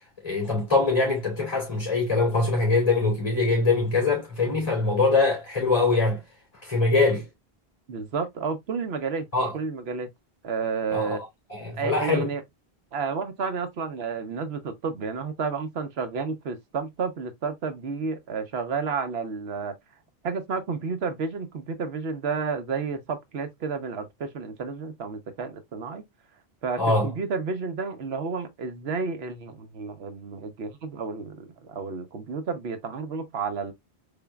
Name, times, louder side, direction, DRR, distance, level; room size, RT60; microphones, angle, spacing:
voice 1, 0.2-6.2 6.6-7.3 9.3-9.5 10.9-11.2 11.5-12.3 26.8-27.1, left 3 dB, 30° left, 2.6 m, -23 dB
voice 2, 7.9-9.3 9.5-10.1 10.4-11.2 11.7-12.4 12.9-19.7 20.2-26.0 26.6-33.7, right 5 dB, 85° right, 1.1 m, -31 dB
4.4 x 3.7 x 2.2 m
omnidirectional pair, 1.0 m